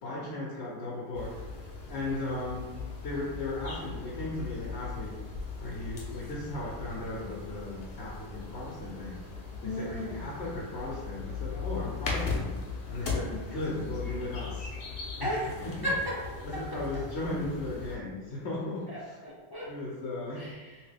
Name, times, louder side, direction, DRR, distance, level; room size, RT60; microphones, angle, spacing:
voice 1, 0.0-1.3 1.9-2.7 3.0-5.2 5.6-9.2 9.6-12.5 12.9-14.7 15.2-15.3 15.6-15.7 16.4-19.2 19.6-20.5, left 2 dB, 90° left, -5 dB, 1.0 m, -36 dB
sound 1, 1.1-18.0, left 4 dB, 65° left, 0.9 m, -39 dB
voice 2, 9.6-10.3 13.3-13.4 15.2-16.2 16.5-16.8 18.9-19.7 20.4-20.8, equal, 35° left, -6 dB, 0.4 m, -35 dB
2.9 x 2.8 x 3.3 m, 1.3 s
omnidirectional pair, 1.1 m